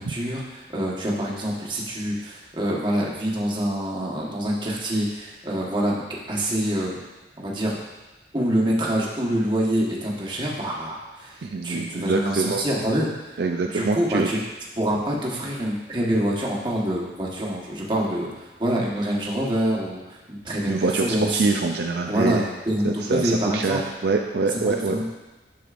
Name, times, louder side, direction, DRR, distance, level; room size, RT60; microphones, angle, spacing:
voice 1, 0.0-7.0 7.4-7.8 8.3-13.4 13.7-14.4 14.8-21.4 22.1-23.8 24.7-25.0, right 1 dB, 25° right, -4 dB, 1.2 m, -26 dB
voice 2, 11.4-12.7 13.4-14.3 20.7-22.4 22.8-25.0, right 3 dB, 65° right, 2 dB, 0.4 m, -24 dB
10.0 x 6.2 x 2.5 m, 1.1 s
head